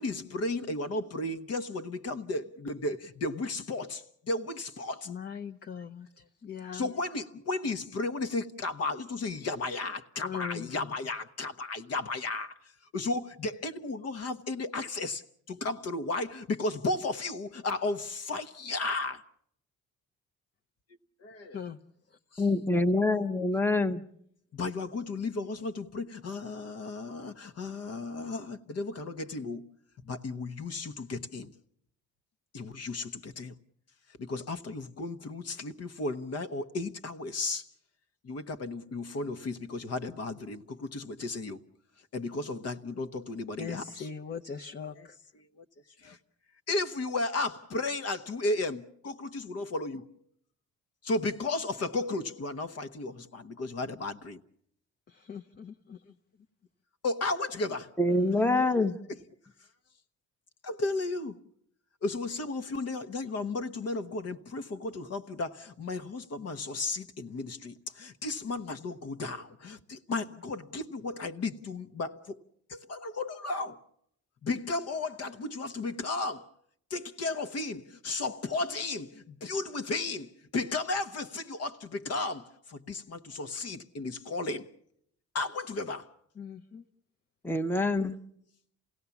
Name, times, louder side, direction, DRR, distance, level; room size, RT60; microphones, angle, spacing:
voice 1, 0.0-5.1 6.7-19.2 21.2-21.6 22.3-22.5 24.5-29.7 30.0-31.5 32.5-33.5 34.2-37.7 38.2-41.6 42.1-44.1 45.0-45.1 45.6-45.7 46.0-46.2 46.7-50.1 51.0-54.4 56.1-56.2 57.0-57.9 58.8-58.9 59.1-59.2 60.6-61.4 62.0-72.4 72.7-73.8 74.4-76.5 76.9-84.7 85.3-86.1, left 3 dB, 55° left, 1.1 m, -34 dB
voice 2, 5.1-6.9 10.2-10.9 21.5-21.8 43.6-45.2 55.1-56.0 58.1-58.7 86.4-86.8, left 7 dB, 35° left, 0.8 m, -40 dB
voice 3, 22.4-24.0 58.0-59.0 87.4-88.2, left 2 dB, 5° left, 0.8 m, -26 dB
28.0 x 17.0 x 7.1 m
cardioid pair, 90°, 30 cm